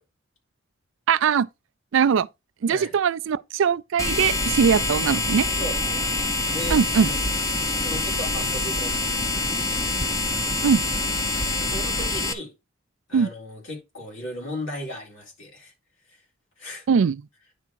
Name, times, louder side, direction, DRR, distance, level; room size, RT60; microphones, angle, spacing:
voice 1, 1.1-1.5 1.9-2.3 2.6-5.5 6.7-7.1 10.6-10.8 13.1-13.3 16.9-17.2, right 6 dB, 65° right, 0.4 m, -21 dB
sound 1, 4.0-12.3, left 2 dB, 15° left, 0.8 m, -25 dB
voice 2, 5.6-6.1 6.5-7.2 7.8-9.9 11.6-12.5 13.1-15.7 16.1-16.2 16.6-16.8, left 1 dB, 65° left, 4.0 m, -36 dB
9.7 x 3.6 x 4.5 m
head